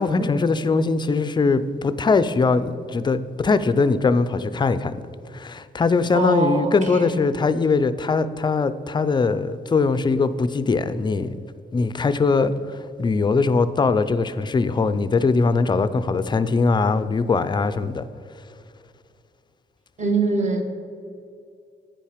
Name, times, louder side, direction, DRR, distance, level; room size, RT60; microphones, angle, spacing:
voice 1, 0.0-4.9 5.3-11.4 11.7-18.1, left 4 dB, 25° left, 0.4 m, -21 dB
voice 2, 6.1-7.1 20.0-20.6, right 3 dB, 40° right, 1.2 m, -23 dB
8.7 x 5.5 x 5.0 m
cardioid pair, 90°, 18 cm